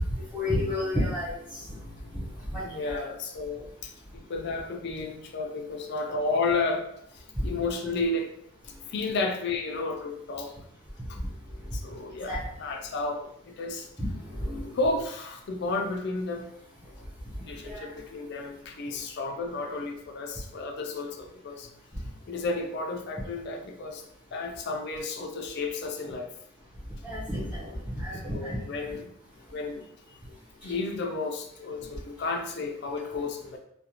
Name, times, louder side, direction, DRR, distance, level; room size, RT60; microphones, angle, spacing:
voice 1, 0.3-1.6 2.1-2.2 2.5-3.0 12.3-12.4 14.0-14.1 14.4-14.7 17.6-17.9 27.0-28.6, left 1 dB, 5° right, -10 dB, 0.5 m, -31 dB
voice 2, 2.6-6.9 7.1-8.3 8.9-10.5 11.7-12.3 12.6-13.9 14.7-16.5 17.4-21.7 22.3-24.0 24.3-26.3 28.2-29.0 29.5-29.9 30.6-33.6, left 3 dB, 50° left, 3 dB, 0.3 m, -32 dB
2.5 x 2.1 x 2.8 m, 0.72 s
head